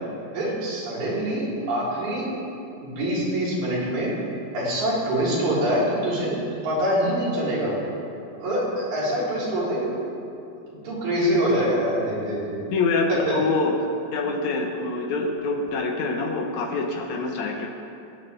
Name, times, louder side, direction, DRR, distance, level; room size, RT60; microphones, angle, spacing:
voice 1, 0.3-2.3 2.8-4.1 4.5-7.8 8.4-10.0 10.6-12.6 13.1-13.3, equal, 75° right, -8 dB, 5.1 m, -25 dB
voice 2, 12.7-13.8 14.1-17.7, left 3 dB, 70° left, 2 dB, 2.0 m, -25 dB
20.0 x 10.0 x 3.4 m, 2.6 s
omnidirectional pair, 4.0 m